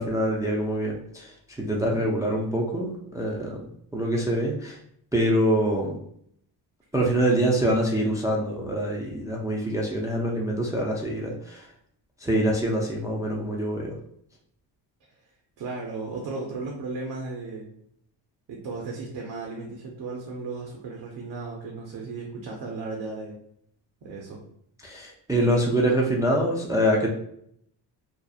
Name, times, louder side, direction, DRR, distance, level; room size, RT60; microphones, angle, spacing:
voice 1, 0.0-3.6 3.9-4.8 5.1-6.0 6.9-11.7 12.2-13.9 24.8-27.1, right 1 dB, 10° right, -2 dB, 0.3 m, -25 dB
voice 2, 1.7-2.0 15.1-15.2 15.6-17.7 18.5-23.4 24.0-24.4, right 3 dB, 70° right, -1 dB, 0.6 m, -35 dB
2.7 x 2.0 x 2.3 m, 0.69 s
cardioid pair, 80°, 44 cm